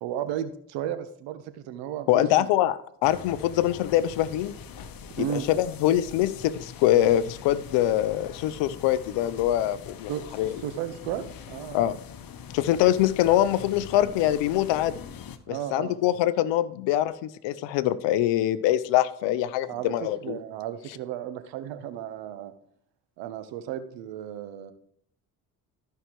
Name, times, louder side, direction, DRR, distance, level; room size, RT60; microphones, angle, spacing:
voice 1, 0.0-2.6 5.2-5.5 10.1-11.9 15.5-16.0 19.7-19.9 20.2-22.5 23.2-24.7, right 10 dB, 75° right, 11 dB, 1.0 m, -34 dB
voice 2, 2.1-4.5 5.2-10.1 10.4-10.5 11.7-12.0 12.5-14.9 15.5-20.4, left 13 dB, 75° left, 16 dB, 0.7 m, -24 dB
sound 1, 3.0-15.4, left 7 dB, 50° left, 1.0 m, -43 dB
13.5 x 5.7 x 3.1 m, 0.66 s
hypercardioid pair, 55°, 44 cm